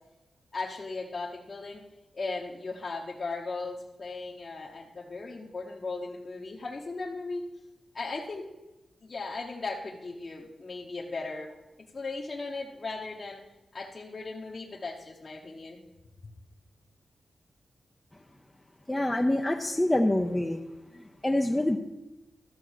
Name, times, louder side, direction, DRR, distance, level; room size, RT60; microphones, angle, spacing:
voice 1, 0.5-1.8 2.1-7.4 7.9-8.5 9.0-11.5 11.9-13.4 13.7-15.8, left 3 dB, 40° left, -3 dB, 1.1 m, -37 dB
voice 2, 18.9-20.6 21.2-21.8, left 1 dB, 10° left, 1 dB, 0.6 m, -25 dB
13.0 x 6.3 x 6.3 m, 1.1 s
wide cardioid pair, 150°, 0 cm